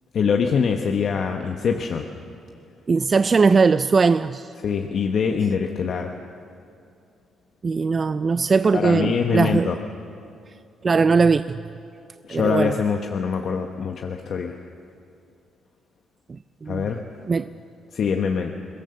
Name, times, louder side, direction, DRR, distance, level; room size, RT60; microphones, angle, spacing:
voice 1, 0.1-2.1 4.6-6.1 8.7-9.8 12.3-14.6 16.7-17.0 17.9-18.5, left 6 dB, 60° left, 4 dB, 1.1 m, -24 dB
voice 2, 2.9-4.5 7.6-9.7 10.8-11.6 12.3-12.7 16.3-16.9 17.3-17.5, right 4 dB, 35° right, 13 dB, 0.4 m, -20 dB
23.0 x 16.5 x 7.0 m, 2.5 s
cardioid pair, 90°, 0 cm